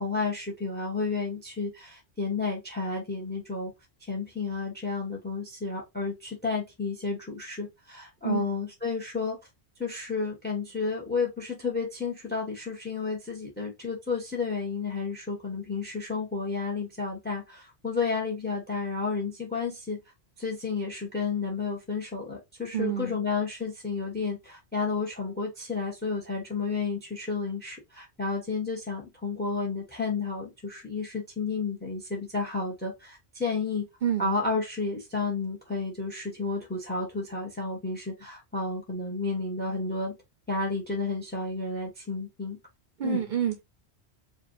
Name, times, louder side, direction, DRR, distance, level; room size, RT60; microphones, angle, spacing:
voice 1, 0.0-3.7 4.0-9.4 9.8-20.0 20.4-33.8 34.2-40.1 40.5-42.6 43.0-43.2, left 4 dB, 10° left, 1.1 m, -31 dB
voice 2, 22.7-23.2 34.0-34.3 43.0-43.6, right 9 dB, 55° right, 0.7 m, -28 dB
4.8 x 2.6 x 3.0 m
omnidirectional pair, 1.1 m